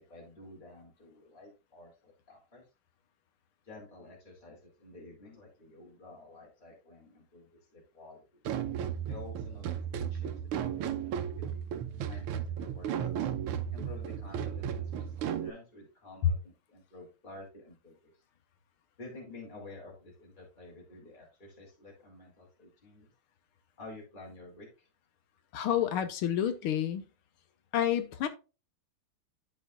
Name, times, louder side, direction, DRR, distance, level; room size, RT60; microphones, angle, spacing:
voice 1, 0.0-2.6 3.6-8.4 9.1-11.6 12.1-13.3 13.7-18.1 19.0-23.1 23.8-24.9, left 2 dB, 20° left, 2.3 m, -51 dB
sound 1, 8.4-15.5, right 9 dB, 90° right, 1.6 m, -34 dB
voice 2, 25.5-27.1 27.7-28.3, left 10 dB, 85° left, 1.8 m, -28 dB
11.5 x 4.7 x 2.4 m
omnidirectional pair, 2.3 m